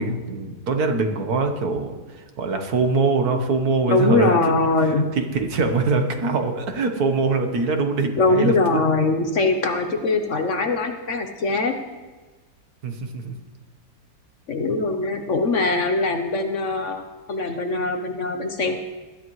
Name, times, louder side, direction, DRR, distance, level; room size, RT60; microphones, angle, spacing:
voice 1, 0.0-4.4 4.8-8.5 12.8-13.4, right 3 dB, 65° right, 5 dB, 1.7 m, -23 dB
voice 2, 3.9-5.0 8.2-11.8 14.5-17.0 17.3-18.8, left 3 dB, 50° left, 5 dB, 1.2 m, -22 dB
20.0 x 12.0 x 3.2 m, 1.3 s
omnidirectional pair, 1.8 m